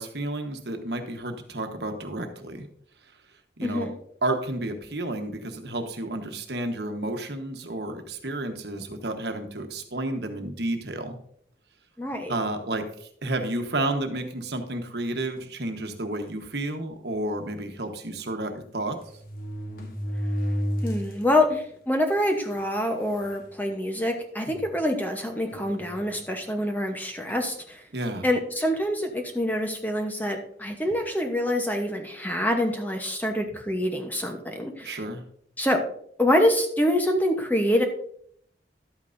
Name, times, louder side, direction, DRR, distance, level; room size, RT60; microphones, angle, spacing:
voice 1, 0.0-2.7 3.6-3.9 4.2-11.2 12.3-19.0 24.4-24.6 27.9-28.3 34.8-35.2, right 2 dB, 70° right, 5 dB, 1.2 m, -31 dB
voice 2, 12.0-12.3 20.8-27.8 28.2-35.0 35.6-35.8 36.2-37.8, left 1 dB, 10° left, 4 dB, 0.9 m, -26 dB
sound 1, 15.4-15.6 16.4-16.5 16.8-16.9 18.2-18.3 19.0-21.2 21.7-21.8 22.6-22.7 23.1-23.4 24.1-24.2 25.5-26.3 27.3-27.5, equal, 50° left, 1.3 m, -32 dB
12.0 x 9.0 x 2.6 m, 0.65 s
head